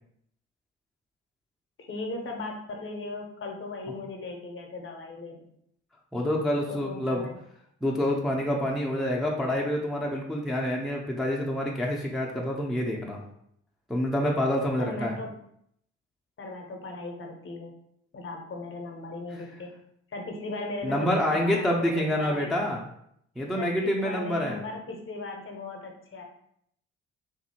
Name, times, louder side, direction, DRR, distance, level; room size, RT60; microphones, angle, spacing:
voice 1, 1.8-5.5 6.7-7.3 14.8-15.3 16.4-17.7 18.1-19.7 20.1-22.5 23.6-26.2, left 3 dB, 40° left, 2 dB, 0.7 m, -37 dB
voice 2, 6.1-7.3 7.8-13.2 13.9-15.2 20.8-22.8 23.4-24.6, left 1 dB, ahead, -1 dB, 0.5 m, -27 dB
2.7 x 2.5 x 2.7 m, 0.72 s
hypercardioid pair, 45°, 34 cm